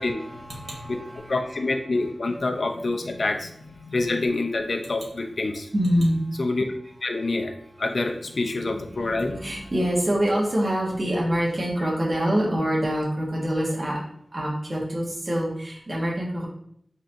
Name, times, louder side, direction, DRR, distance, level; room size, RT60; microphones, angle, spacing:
voice 1, 0.0-2.4 3.8-4.0 5.7-6.5 8.9-14.0 14.3-16.5, equal, 35° right, -4 dB, 1.5 m, -26 dB
voice 2, 1.3-5.7 6.4-6.6 7.0-7.5 7.8-9.5, left 2 dB, 65° left, 4 dB, 0.6 m, -26 dB
4.7 x 4.2 x 2.6 m, 0.69 s
wide cardioid pair, 90°, 0 cm